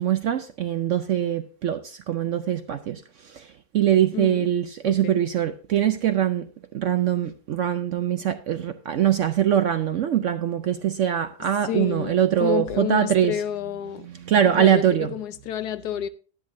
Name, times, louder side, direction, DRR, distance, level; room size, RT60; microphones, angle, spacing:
voice 1, 0.0-3.0 3.7-6.5 6.7-13.3 14.2-15.1, right 10 dB, 65° right, 0.7 m, -22 dB
voice 2, 4.1-4.5 4.8-5.2 11.6-14.1 14.6-16.1, left 11 dB, 75° left, 1.2 m, -30 dB
10.5 x 10.5 x 2.6 m
omnidirectional pair, 1.8 m